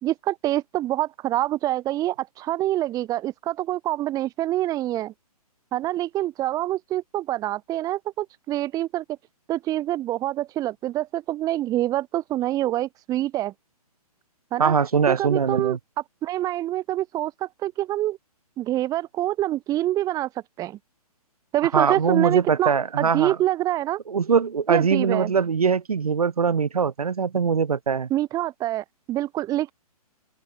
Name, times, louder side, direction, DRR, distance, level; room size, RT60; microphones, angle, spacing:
voice 1, 0.0-5.1 5.7-9.0 9.5-13.5 14.5-14.7 15.1-15.8 16.2-18.2 18.6-20.3 20.6-20.8 21.5-24.0 24.7-25.3 28.1-29.7, right 14 dB, 20° right, 1.5 m, -26 dB
voice 2, 14.6-15.8 21.7-23.4 24.1-28.1, right 6 dB, 70° right, 2.8 m, -22 dB
open air
figure-of-eight pair, 130°, 20 cm